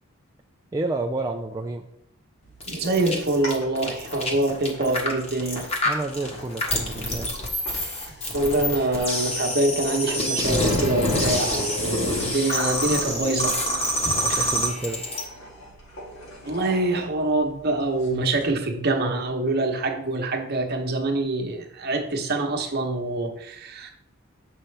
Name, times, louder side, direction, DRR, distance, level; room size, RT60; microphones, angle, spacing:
voice 1, 0.7-1.8 5.8-7.3 14.2-15.1, right 2 dB, 15° right, 1 dB, 0.3 m, -30 dB
sound 1, 2.4-18.5, left 1 dB, 80° left, 2.4 m, -42 dB
sound 2, 2.6-15.2, left 1 dB, 30° left, 1.4 m, -26 dB
voice 2, 2.7-5.7 8.3-13.6 14.1-14.5 16.4-23.9, right 2 dB, 50° right, 3 dB, 1.0 m, -25 dB
7.4 x 5.6 x 3.3 m, 0.74 s
head